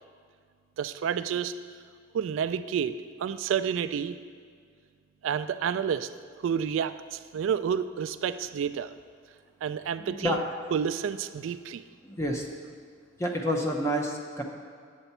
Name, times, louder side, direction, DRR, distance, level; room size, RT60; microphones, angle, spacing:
voice 1, 0.8-1.5 2.1-4.2 5.2-6.1 6.4-8.9 9.6-10.4 10.7-11.8, right 7 dB, 80° right, 12 dB, 0.3 m, -29 dB
voice 2, 10.0-10.4 12.0-12.5 13.2-14.4, equal, 15° left, 2 dB, 0.7 m, -29 dB
8.0 x 6.8 x 4.3 m, 2.1 s
head